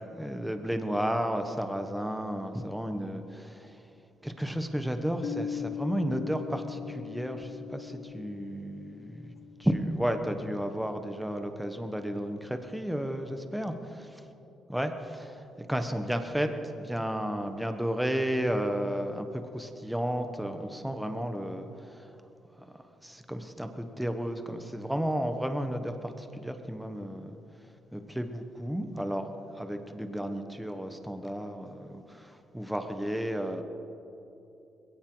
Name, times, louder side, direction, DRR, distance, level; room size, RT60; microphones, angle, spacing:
voice 1, 0.1-3.8 4.2-9.3 9.6-13.7 14.7-22.1 22.6-27.4 27.9-33.6, equal, 5° right, 6 dB, 1.3 m, -33 dB
Piano, 5.2-10.6, left 8 dB, 85° left, 1.3 m, -40 dB
21.0 x 17.0 x 4.0 m, 2.9 s
cardioid pair, 90°, 0 cm